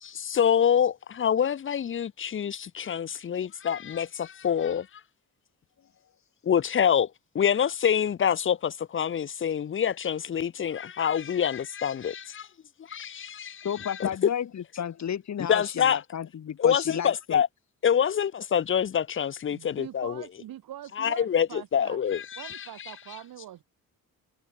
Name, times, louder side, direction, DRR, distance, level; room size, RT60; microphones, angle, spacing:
voice 1, 0.0-4.9 6.4-7.1 7.3-12.5 12.9-14.1 15.5-16.0 16.6-17.5 17.8-20.2 21.0-22.9, left 8 dB, 35° left, 0.7 m, -26 dB
voice 2, 13.6-17.4, left 9 dB, 50° left, 3.0 m, -32 dB
voice 3, 19.5-22.0 22.4-23.6, right 12 dB, 85° right, 4.4 m, -43 dB
cardioid pair, 135°, 34 cm